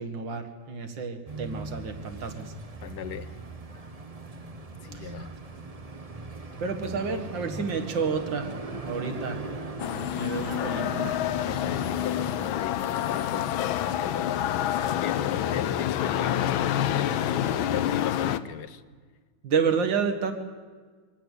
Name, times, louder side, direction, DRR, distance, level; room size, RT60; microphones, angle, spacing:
voice 1, 0.0-2.5 4.9-5.1 6.6-8.5 8.8-9.4 10.1-11.2 19.4-20.3, right 5 dB, 70° right, 6 dB, 2.5 m, -30 dB
sound 1, 1.3-12.5, right 3 dB, 25° right, 0.9 m, -39 dB
voice 2, 2.8-3.4 4.8-5.3 11.4-13.5 13.8-18.8, left 9 dB, 60° left, 14 dB, 1.3 m, -38 dB
sound 2, 9.8-18.4, left 11 dB, 90° left, 1.6 m, -27 dB
23.5 x 18.0 x 8.3 m, 1.5 s
omnidirectional pair, 2.1 m